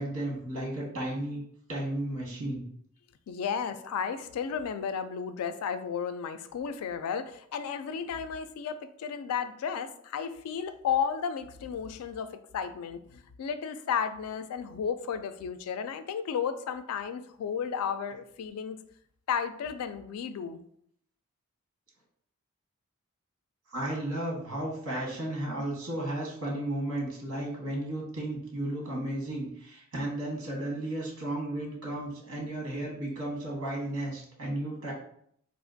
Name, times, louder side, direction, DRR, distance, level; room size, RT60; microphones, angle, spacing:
voice 1, 0.0-1.4 1.7-2.7 23.7-34.9, right 1 dB, 75° right, -2 dB, 1.2 m, -34 dB
voice 2, 3.3-18.8 19.3-20.6, left 7 dB, 85° left, 11 dB, 0.3 m, -33 dB
3.6 x 2.4 x 2.5 m, 0.67 s
head